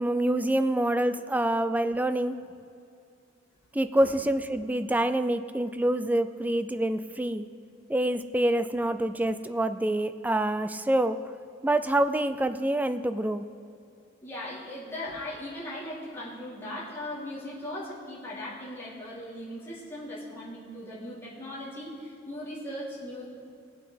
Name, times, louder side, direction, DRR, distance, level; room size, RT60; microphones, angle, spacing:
voice 1, 0.0-2.4 3.7-7.5 7.9-11.2 11.6-13.5, right 1 dB, 10° right, 11 dB, 0.3 m, -26 dB
voice 2, 14.2-23.3, left 1 dB, 10° left, -9 dB, 3.1 m, -38 dB
19.5 x 7.7 x 3.4 m, 2.5 s
head